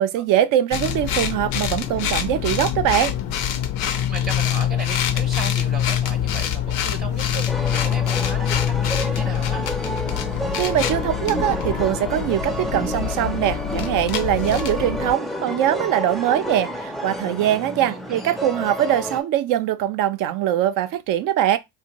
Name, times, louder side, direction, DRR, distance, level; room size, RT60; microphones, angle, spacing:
voice 1, 0.0-3.1 10.6-21.6, right 11 dB, 65° right, 0.5 m, -22 dB
sound 1, 0.7-15.1, left 10 dB, 75° left, 0.5 m, -25 dB
voice 2, 4.1-9.7 17.8-18.3, right 4 dB, 25° right, 0.7 m, -36 dB
sound 2, 7.5-19.2, equal, ahead, 0.4 m, -30 dB
2.6 x 2.0 x 2.8 m
supercardioid pair, 70°, 34 cm